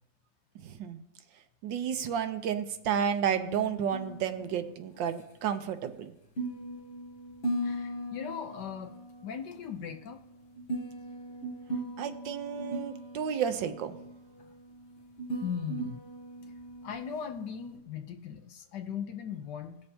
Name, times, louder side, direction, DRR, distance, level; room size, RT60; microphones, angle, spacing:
voice 1, 0.6-1.0 1.6-6.1 12.0-14.0, right 8 dB, 80° right, 9 dB, 1.5 m, -31 dB
sound 1, 1.7-17.8, right 1 dB, 40° left, 1.0 m, -40 dB
voice 2, 7.6-8.9 9.2-10.2 15.4-16.1 16.4-16.5 16.8-19.8, left 7 dB, 70° left, 6 dB, 1.3 m, -38 dB
19.0 x 6.6 x 2.8 m, 0.88 s
omnidirectional pair, 2.0 m